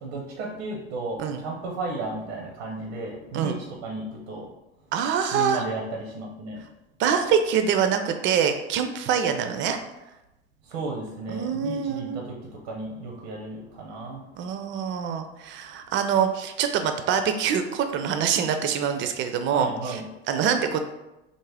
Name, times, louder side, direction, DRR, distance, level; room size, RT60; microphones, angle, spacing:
voice 1, 0.0-4.5 5.3-6.6 10.6-14.3 19.5-20.0, right 2 dB, 80° right, -1 dB, 0.8 m, -34 dB
voice 2, 4.9-5.6 7.0-9.8 11.3-12.2 14.4-20.0 20.3-20.8, right 7 dB, 40° right, 7 dB, 0.4 m, -25 dB
3.7 x 2.1 x 3.3 m, 0.96 s
hypercardioid pair, 80°, 32 cm